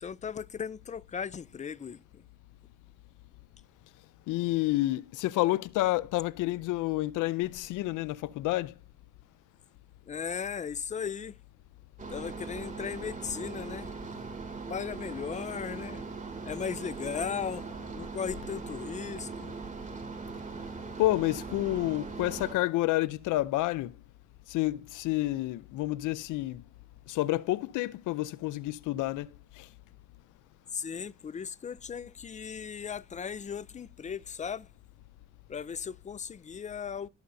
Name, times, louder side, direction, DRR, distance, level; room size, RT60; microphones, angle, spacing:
voice 1, 0.0-2.3 10.1-11.4 12.1-13.9 14.7-16.0 16.5-19.5 30.7-34.7 35.5-37.1, left 7 dB, 25° left, 0.4 m, -37 dB
voice 2, 4.3-8.7 21.0-24.0 24.5-26.6 27.1-29.3 29.6-29.7, left 17 dB, 90° left, 0.5 m, -29 dB
sound 1, 12.0-22.5, right 4 dB, 25° right, 2.5 m, -40 dB
18.0 x 6.8 x 2.7 m
cardioid pair, 90°, 30 cm